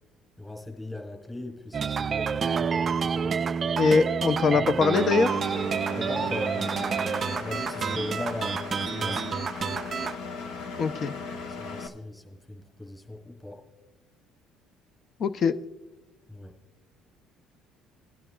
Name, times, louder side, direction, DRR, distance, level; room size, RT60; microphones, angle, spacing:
voice 1, 0.4-3.7 4.5-4.7 5.9-9.3 11.5-13.6 16.3-16.5, left 2 dB, 15° left, -1 dB, 3.6 m, -39 dB
sound 1, 1.7-10.1, right 6 dB, 40° right, 0.3 m, -28 dB
voice 2, 3.7-5.4 10.8-11.1 15.2-15.6, left 5 dB, 50° left, 13 dB, 0.6 m, -23 dB
Engine, 4.9-11.9, left 4 dB, 75° left, 1.2 m, -37 dB
21.0 x 11.0 x 2.3 m, 1.1 s
supercardioid pair, 75°, 0 cm